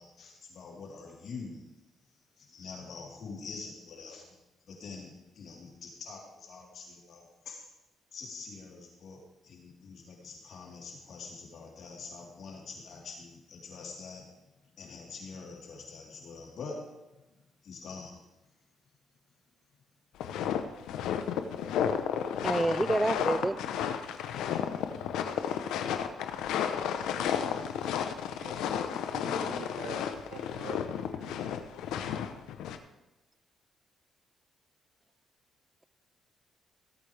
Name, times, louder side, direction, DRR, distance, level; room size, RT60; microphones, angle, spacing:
voice 1, 0.0-1.6 2.4-4.4 4.7-7.6 8.1-14.3 14.8-16.9 17.6-18.2, left 4 dB, 65° left, -2 dB, 3.7 m, -45 dB
sound 1, 20.2-32.8, left 8 dB, 85° left, 0.8 m, -32 dB
voice 2, 22.4-23.7 28.7-28.8 29.2-29.4, right 2 dB, 15° right, 17 dB, 0.4 m, -29 dB
voice 3, 27.9-28.5 29.1-30.8 31.1-31.4, right 6 dB, 70° right, 5 dB, 1.0 m, -46 dB
17.0 x 8.7 x 3.4 m, 0.98 s
cardioid pair, 90°, 0 cm